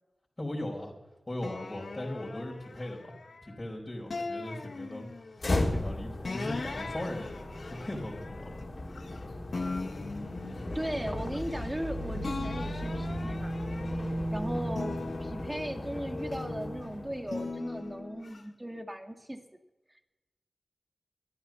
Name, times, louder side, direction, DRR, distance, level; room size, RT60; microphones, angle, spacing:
voice 1, 0.4-0.9 1.3-3.1 3.4-5.1 5.7-8.6, left 1 dB, 30° left, -4 dB, 4.5 m, -38 dB
sound 1, 1.4-3.6 4.1-5.5 6.2-9.2 9.5-11.9 12.2-14.2 14.7-16.7 17.3-18.4, left 3 dB, 75° left, 1.2 m, -40 dB
sound 2, 5.4-17.4, left 1 dB, 60° left, 3.3 m, -35 dB
voice 2, 10.7-13.5 14.3-19.4, right 1 dB, 15° right, 4 dB, 2.2 m, -37 dB
13.0 x 10.5 x 7.1 m, 1.0 s
cardioid pair, 45°, 0 cm